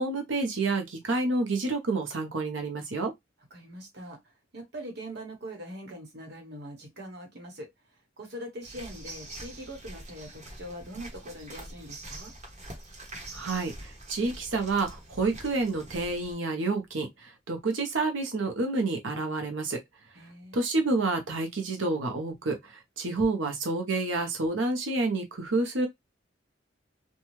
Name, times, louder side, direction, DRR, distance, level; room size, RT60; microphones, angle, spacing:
voice 1, 0.0-3.1 13.3-19.8 20.5-25.9, right 3 dB, 85° right, 0.9 m, -29 dB
voice 2, 3.5-7.7 8.2-12.3 20.1-20.6, equal, 60° right, 1.1 m, -42 dB
sound 1, 8.6-16.3, right 1 dB, 40° right, 1.0 m, -44 dB
2.6 x 2.3 x 3.1 m
head